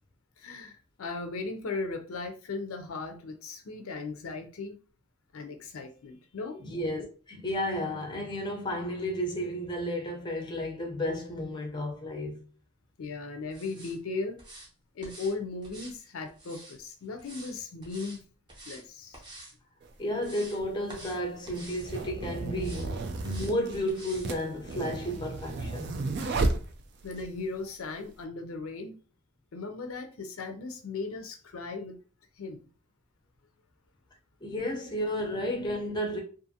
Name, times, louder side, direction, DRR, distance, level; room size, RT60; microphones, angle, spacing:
voice 1, 0.4-4.8 5.3-6.6 13.0-14.4 14.9-18.2 18.7-19.2 27.0-28.9 29.5-32.0 32.4-32.7, left 3 dB, 75° left, 0.5 m, -37 dB
voice 2, 6.6-12.4 20.0-25.9 34.4-36.2, equal, 20° left, 0.5 m, -32 dB
sound 1, 13.5-14.0 14.4-14.7 15.0-15.3 15.6-16.8 17.2-17.5 17.8-18.2 18.5-18.8 19.1-19.5 19.9-20.6 20.9-21.2 21.5-21.9 22.6-22.9 23.2-23.5 23.9-24.3 24.7-24.8, right 1 dB, 20° right, 0.7 m, -48 dB
sound 2, 19.8-19.9 20.8-27.3, right 2 dB, 50° right, 0.3 m, -33 dB
2.6 x 2.4 x 2.7 m
head